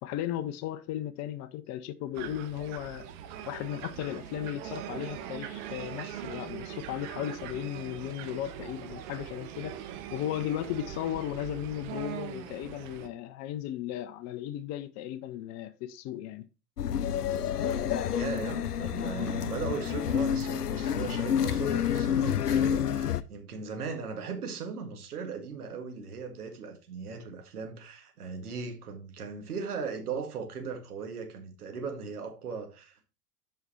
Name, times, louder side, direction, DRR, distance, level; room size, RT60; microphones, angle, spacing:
voice 1, 0.0-3.1 3.5-16.5, left 12 dB, 35° left, 0.6 m, -36 dB
sound 1, 2.1-13.1, right 10 dB, 50° right, 1.3 m, -41 dB
sound 2, 16.8-23.2, left 9 dB, 85° left, 0.6 m, -29 dB
voice 2, 18.1-33.0, right 5 dB, 75° right, 1.9 m, -38 dB
7.9 x 5.7 x 4.3 m
figure-of-eight pair, 85°, 45 cm